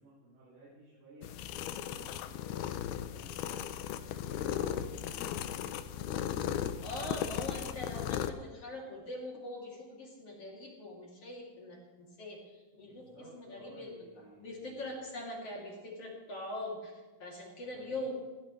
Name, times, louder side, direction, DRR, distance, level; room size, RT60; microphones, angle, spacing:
voice 1, 0.0-7.6 12.8-15.0 17.6-18.1, right 2 dB, 85° right, -9 dB, 8.8 m, -56 dB
sound 1, 1.2-8.3, left 10 dB, 90° left, 2.2 m, -36 dB
voice 2, 6.8-18.1, left 1 dB, 35° left, -2 dB, 3.1 m, -43 dB
21.0 x 16.5 x 3.2 m, 1.3 s
omnidirectional pair, 5.4 m